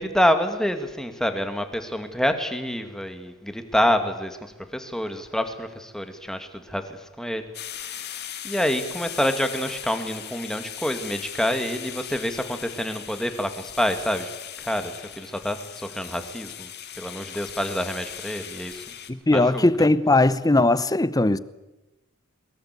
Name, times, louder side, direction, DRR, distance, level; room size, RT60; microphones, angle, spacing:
voice 1, 0.0-7.9 8.4-14.3 14.6-16.7 17.0-18.8 19.3-19.7, equal, 5° left, 2.1 m, -27 dB
sound 1, 7.5-19.1, left 10 dB, 55° left, 2.0 m, -38 dB
voice 2, 19.1-21.4, left 2 dB, 20° left, 0.8 m, -19 dB
22.5 x 22.0 x 8.3 m
head